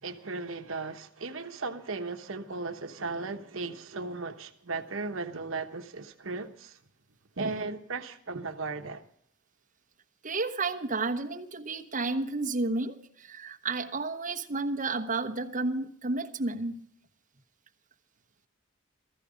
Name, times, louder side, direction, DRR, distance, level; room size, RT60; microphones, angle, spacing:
voice 1, 0.0-6.8 7.4-9.0, right 3 dB, 75° right, 1.1 m, -36 dB
voice 2, 10.2-16.8, right 3 dB, 40° right, 1.2 m, -31 dB
16.0 x 14.5 x 5.1 m
head